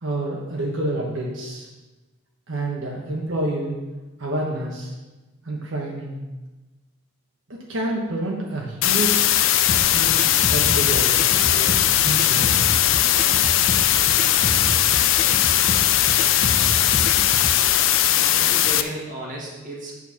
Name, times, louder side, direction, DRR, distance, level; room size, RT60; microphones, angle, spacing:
voice 1, 0.0-1.7 2.5-3.8 4.2-4.9 5.4-6.2 7.5-9.2 9.8-11.7 12.0-12.6, right 1 dB, 70° right, -3 dB, 1.2 m, -28 dB
sound 1, 8.8-18.8, left 12 dB, 70° left, 0.4 m, -19 dB
sound 2, 9.7-17.6, left 1 dB, 35° left, 0.7 m, -30 dB
voice 2, 18.2-20.0, equal, 40° right, -3 dB, 1.9 m, -34 dB
8.6 x 4.5 x 5.8 m, 1.2 s
head